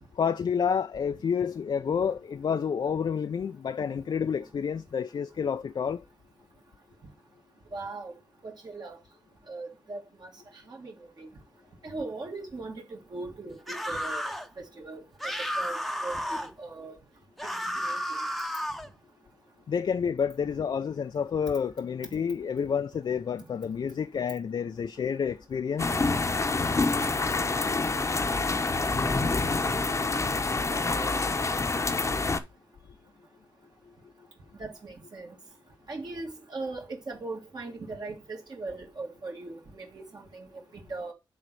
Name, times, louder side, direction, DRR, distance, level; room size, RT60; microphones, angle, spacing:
voice 1, 0.2-6.0 19.7-26.0, left 7 dB, 60° left, 0.5 m, -29 dB
voice 2, 7.7-8.1 8.4-9.0 9.5-10.3 10.7-11.3 11.8-14.2 14.6-15.0 15.6-17.0 17.7-18.0 26.9-27.0 30.7-31.4 34.6-35.3 35.9-40.5 40.7-41.1, right 3 dB, 55° right, 2.0 m, -39 dB
sound 1, 13.7-14.5 15.2-16.5 17.4-18.9, equal, ahead, 0.9 m, -32 dB
sound 2, 25.8-32.4, left 3 dB, 35° left, 0.9 m, -27 dB
6.7 x 4.0 x 6.2 m
cardioid pair, 85°, 9 cm